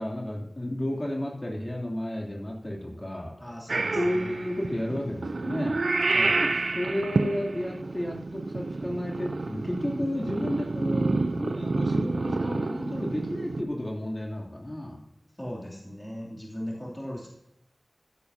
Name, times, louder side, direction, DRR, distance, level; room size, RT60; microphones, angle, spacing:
voice 1, 0.0-3.3 3.9-6.1 6.3-6.5 6.7-15.0, left 1 dB, 30° left, -2 dB, 3.1 m, -32 dB
voice 2, 3.4-4.3 6.1-6.4 15.4-17.3, equal, 15° left, -4 dB, 2.9 m, -38 dB
Purr / Meow, 3.7-13.6, right 3 dB, 85° right, 0.6 m, -29 dB
14.5 x 11.0 x 2.8 m, 0.87 s
wide cardioid pair, 50°, 0 cm